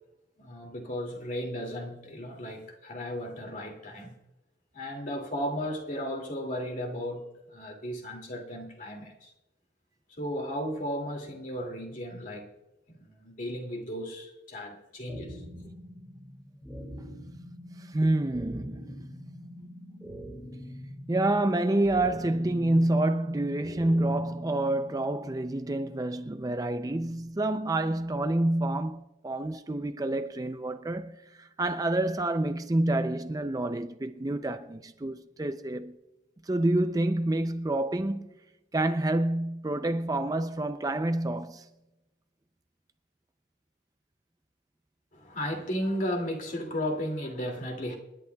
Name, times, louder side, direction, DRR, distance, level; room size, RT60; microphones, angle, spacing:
voice 1, 0.4-4.1 4.7-9.3 10.1-12.5 12.9-15.6 45.1-48.0, equal, 45° left, 2.4 m, -35 dB
sound 1, 15.1-25.1, equal, ahead, 2.2 m, -44 dB
voice 2, 17.8-19.1 21.1-36.0 36.4-38.3 38.7-41.7, right 1 dB, 20° right, 0.4 m, -28 dB
29.0 x 11.0 x 2.3 m
head